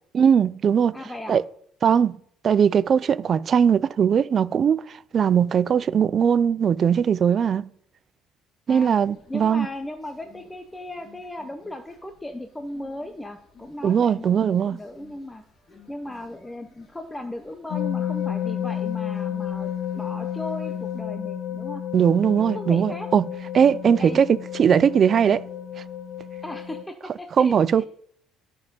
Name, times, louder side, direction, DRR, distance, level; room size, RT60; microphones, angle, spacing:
voice 1, 0.1-1.0 1.3-1.4 1.8-2.2 2.4-7.6 8.7-9.7 13.8-14.8 21.9-23.2 23.5-25.4 27.4-27.9, right 7 dB, 30° right, 0.3 m, -20 dB
voice 2, 0.9-1.4 8.7-9.0 9.3-15.4 15.9-21.8 22.4-23.1 24.0-24.2 26.4-27.9, left 1 dB, 5° left, 0.6 m, -37 dB
sound 1, 8.7-21.0, left 3 dB, 25° left, 1.9 m, -55 dB
sound 2, 17.7-26.8, left 10 dB, 65° left, 0.5 m, -31 dB
13.0 x 5.4 x 5.3 m
cardioid pair, 160°, 0 cm